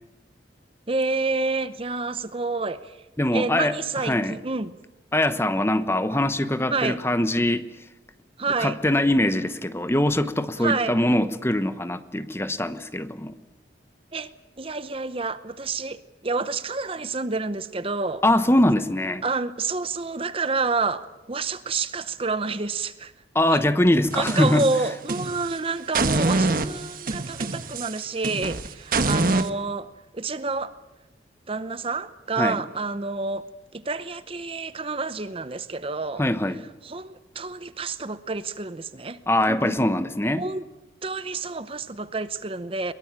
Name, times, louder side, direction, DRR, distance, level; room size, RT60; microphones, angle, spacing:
voice 1, 0.9-3.0 3.3-4.8 6.7-7.0 8.4-8.8 10.6-11.0 14.1-14.3 14.6-18.2 19.2-23.1 23.5-23.6 24.1-30.7 31.5-33.5 33.7-36.2 36.8-39.2 39.5-39.8 40.4-40.6 41.0-42.9, right 3 dB, 30° right, 13 dB, 0.8 m, -29 dB
voice 2, 3.2-3.7 4.0-4.4 5.1-7.6 8.6-13.3 18.2-19.2 23.3-24.7 32.4-32.6 36.2-36.6 39.3-40.4, left 1 dB, 15° left, 11 dB, 1.0 m, -22 dB
sound 1, 24.1-25.5 25.9-29.5, right 3 dB, 50° right, 1.3 m, -25 dB
22.5 x 21.5 x 8.9 m, 0.99 s
head